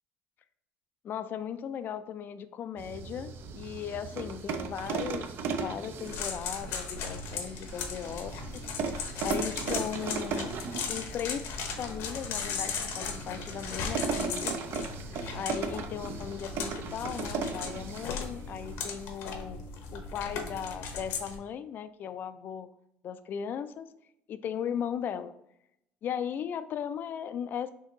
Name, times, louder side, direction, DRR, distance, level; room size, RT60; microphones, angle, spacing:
voice 1, 1.0-8.4 8.9-14.6 15.3-19.6 19.9-22.7 23.0-23.9 24.3-25.4 26.0-27.7, left 8 dB, 45° left, 0.4 m, -37 dB
sound 1, 2.8-19.2, right 5 dB, 55° right, 0.5 m, -37 dB
sound 2, 6.1-21.4, left 5 dB, 70° left, 0.9 m, -37 dB
4.5 x 2.9 x 3.6 m
cardioid pair, 110°, 4 cm